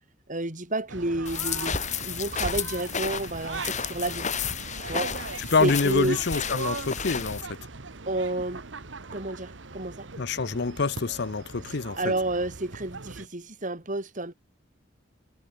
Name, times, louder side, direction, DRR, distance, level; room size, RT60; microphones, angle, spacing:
voice 1, 0.3-4.3 4.9-5.1 5.6-6.2 8.1-8.6 9.1-10.1 11.7-14.3, right 2 dB, 40° right, 3.2 m, -30 dB
sound 1, 0.9-13.3, right 4 dB, 65° right, 1.4 m, -40 dB
sound 2, 1.3-7.4, left 6 dB, 40° left, 3.9 m, -32 dB
voice 2, 5.4-7.5 10.2-12.0, left 4 dB, 60° left, 0.7 m, -26 dB
head